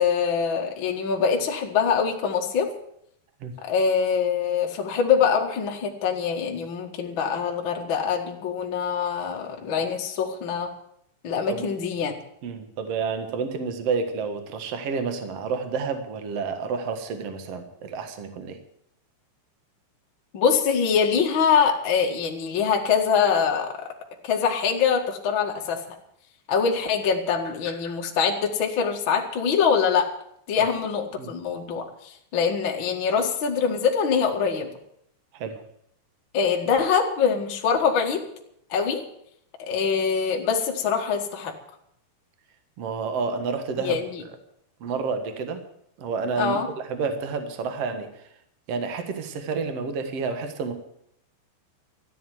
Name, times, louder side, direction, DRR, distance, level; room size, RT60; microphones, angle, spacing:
voice 1, 0.0-2.7 3.6-10.7 11.2-12.1 20.3-23.9 24.2-25.8 26.5-30.1 30.5-34.7 36.3-38.2 38.7-39.0 39.6-41.5 43.8-44.2 46.4-46.7, left 6 dB, 60° left, 1 dB, 1.2 m, -24 dB
voice 2, 12.4-18.6 30.6-30.7 31.2-31.3 35.3-35.6 42.8-44.0 44.8-45.6 46.0-46.6 46.9-48.2 48.7-50.7, right 5 dB, 85° right, 8 dB, 1.3 m, -29 dB
14.0 x 9.7 x 9.3 m, 0.73 s
omnidirectional pair, 5.4 m